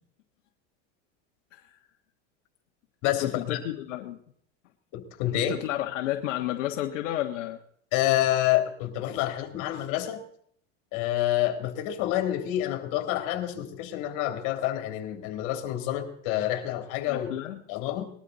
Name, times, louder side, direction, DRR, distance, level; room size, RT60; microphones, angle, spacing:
voice 1, 1.5-1.8 3.2-4.2 5.3-7.6 17.1-17.6, left 13 dB, 85° left, 3 dB, 1.5 m, -32 dB
voice 2, 3.0-3.6 4.9-5.6 7.9-10.2 10.9-17.3 17.7-18.1, left 13 dB, 55° left, 5 dB, 3.2 m, -28 dB
20.5 x 13.0 x 4.1 m, 0.63 s
supercardioid pair, 130°, 36 cm